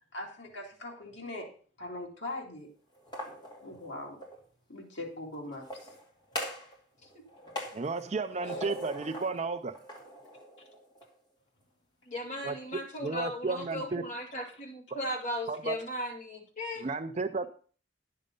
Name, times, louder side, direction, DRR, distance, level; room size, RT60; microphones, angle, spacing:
voice 1, 0.1-1.5 1.8-2.7 3.6-4.2 4.7-5.9 8.5-8.6, left 1 dB, 75° left, 2.7 m, -41 dB
sound 1, 2.9-4.4 5.5-6.8 7.0-9.3 9.7-11.1, left 1 dB, 25° left, 2.4 m, -41 dB
voice 2, 7.7-9.8 12.4-14.0 15.5-15.8 16.8-17.5, right 4 dB, 35° right, 0.4 m, -33 dB
voice 3, 12.1-16.9, left 1 dB, 40° left, 2.5 m, -37 dB
10.0 x 6.6 x 5.3 m
head